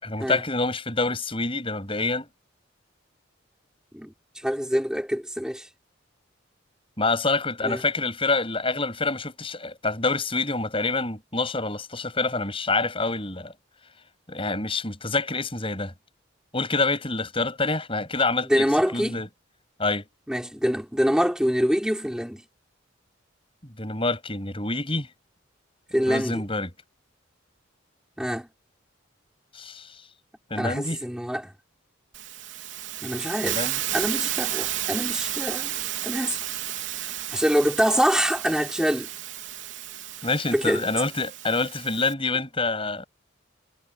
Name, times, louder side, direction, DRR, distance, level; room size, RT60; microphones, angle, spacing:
voice 1, 0.0-2.3 7.0-13.5 14.3-15.9 16.5-18.7 18.9-19.3 19.8-20.0 23.8-25.1 26.1-26.7 29.5-30.0 30.5-31.0 33.4-33.7 40.2-43.1, left 3 dB, 25° left, 7.6 m, -27 dB
voice 2, 3.9-5.7 7.6-7.8 18.5-19.2 20.3-22.4 25.9-26.4 28.2-28.5 30.6-31.5 33.0-35.7 36.0-36.4 37.0-39.1 40.5-40.8, equal, 5° right, 5.8 m, -25 dB
Hiss, 32.1-42.1, right 12 dB, 70° right, 3.7 m, -32 dB
head